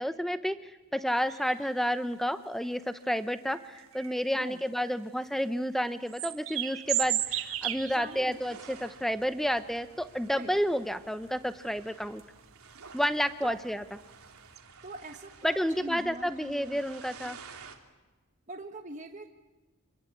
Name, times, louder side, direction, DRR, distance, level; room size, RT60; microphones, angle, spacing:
voice 1, 0.0-12.2 12.9-13.8 15.4-17.4, equal, ahead, 11 dB, 0.8 m, -30 dB
sound 1, 1.1-1.9 2.8-2.9 3.5-4.9 5.2-5.4 5.8-8.3 8.7-8.8 9.2-10.0 10.5-11.1 11.4-11.5 12.1-12.4 13.0-13.1 13.3-13.4 13.8-14.0 14.4-14.6, right 13 dB, 70° right, 1.6 m, -34 dB
sound 2, 6.8-17.7, right 5 dB, 85° right, 2.9 m, -52 dB
voice 2, 7.8-8.4 10.3-10.6 13.4-13.6 14.8-16.8 18.5-19.3, right 2 dB, 35° right, 4 dB, 1.2 m, -43 dB
26.5 x 21.0 x 8.7 m, 1.2 s
head